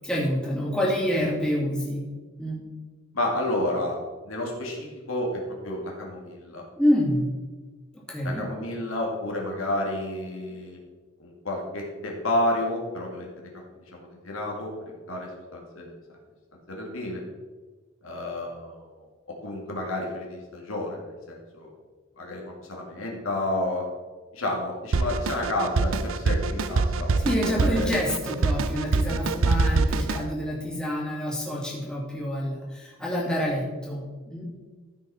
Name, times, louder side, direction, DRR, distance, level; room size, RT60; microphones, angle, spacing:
voice 1, 0.0-2.1 2.4-2.6 6.8-7.3 7.9-8.4 27.2-34.5, equal, 5° left, -5 dB, 2.5 m, -27 dB
voice 2, 3.1-4.0 4.2-6.6 8.2-10.8 11.2-13.5 13.9-16.0 16.7-17.2 18.0-21.7 22.2-23.8 24.3-28.0, left 1 dB, 80° left, -1 dB, 2.4 m, -31 dB
Drum kit, 24.9-30.3, right 3 dB, 75° right, 0.5 m, -24 dB
14.5 x 5.9 x 4.3 m, 1.4 s
head